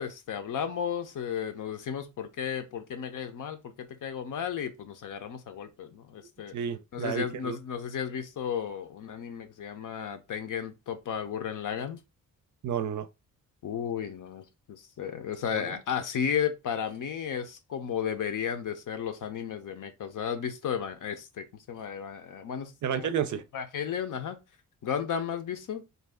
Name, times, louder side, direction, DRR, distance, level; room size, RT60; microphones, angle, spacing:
voice 1, 0.0-6.5 6.9-12.0 13.6-23.1 23.5-24.4 24.8-25.9, left 8 dB, 65° left, 0.7 m, -34 dB
voice 2, 6.5-7.6 12.6-13.1 15.5-15.7 22.8-23.4, right 8 dB, 60° right, 0.5 m, -31 dB
2.7 x 2.3 x 3.4 m
cardioid pair, 90°, 34 cm